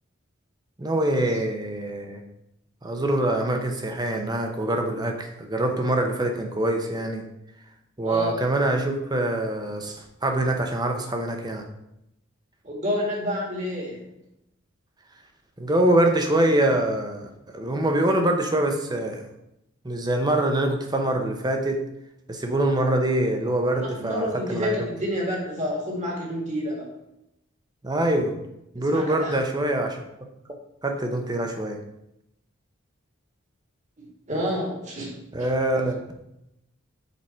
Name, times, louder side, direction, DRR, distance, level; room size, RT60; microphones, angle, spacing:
voice 1, 0.8-2.2 2.8-7.2 8.0-11.6 15.6-19.2 19.8-21.8 22.3-24.8 27.8-28.3 28.7-30.0 30.8-31.8 35.3-36.0, right 1 dB, 20° right, 4 dB, 0.7 m, -24 dB
voice 2, 8.0-8.4 12.6-14.1 24.0-26.9 28.9-29.3 34.0-35.1, equal, 35° right, -1 dB, 1.8 m, -29 dB
6.8 x 4.6 x 4.3 m, 0.86 s
head